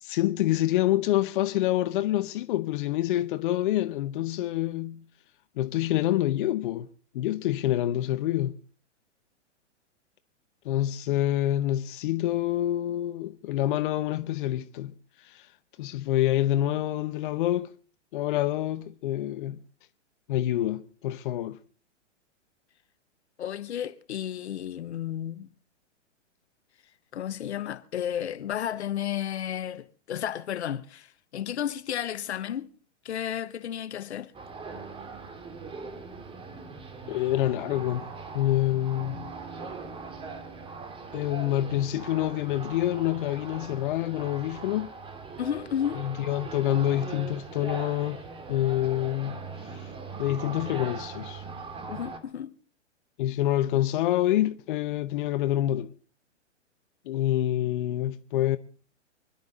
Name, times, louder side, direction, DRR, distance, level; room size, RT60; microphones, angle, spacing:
voice 1, 0.0-5.0 5.6-6.9 7.1-8.6 10.6-14.9 15.2-15.5 15.8-17.7 18.1-19.6 20.3-21.6 37.1-38.0 38.3-39.3 41.1-44.9 45.9-48.2 48.5-49.4 49.7-49.9 50.2-51.4 53.2-55.9 57.1-58.6, left 13 dB, 45° left, 0.9 m, -27 dB
voice 2, 23.4-25.5 27.1-32.7 33.0-34.3 45.4-46.1 51.9-52.5, left 10 dB, 65° left, 1.1 m, -32 dB
sound 1, 34.3-52.2, right 4 dB, 15° right, 2.3 m, -40 dB
25.5 x 12.0 x 4.0 m
figure-of-eight pair, 115°, 36 cm